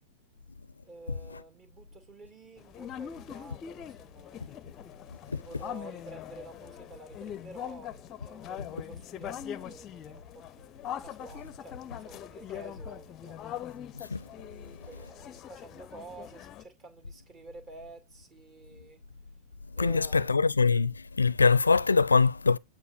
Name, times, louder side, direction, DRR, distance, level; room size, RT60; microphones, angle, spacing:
voice 1, 0.8-4.6 5.3-10.7 11.0-13.4 14.5-19.0 19.7-20.4, right 2 dB, 30° right, 2.2 m, -50 dB
sound 1, 2.6-16.6, left 10 dB, 30° left, 0.6 m, -42 dB
voice 2, 13.9-14.2 19.8-22.6, left 4 dB, 75° left, 0.4 m, -23 dB
9.2 x 4.6 x 6.4 m
figure-of-eight pair, 90°, 0 cm